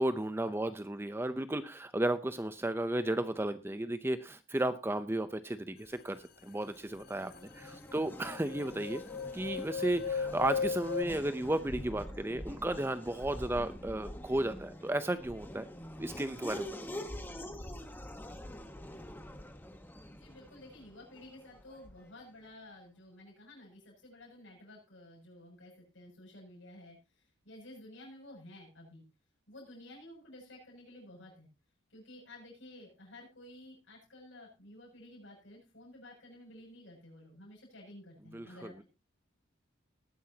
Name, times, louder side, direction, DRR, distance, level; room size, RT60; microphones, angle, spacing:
voice 1, 0.0-9.0 9.3-15.7 16.0-16.7 38.3-38.8, right 1 dB, 10° right, 11 dB, 0.6 m, -34 dB
Race car auto racing / Accelerating revving vroom, 6.6-22.2, left 1 dB, 10° left, 1.1 m, -46 dB
sound 1, 7.0-7.1 7.3-11.0, left 5 dB, 50° left, 0.7 m, -36 dB
voice 2, 7.1-7.8 20.1-27.0 27.5-29.0 29.5-31.5 31.9-38.8, left 1 dB, 75° left, -3 dB, 6.9 m, -53 dB
19.0 x 10.0 x 2.8 m, 0.28 s
head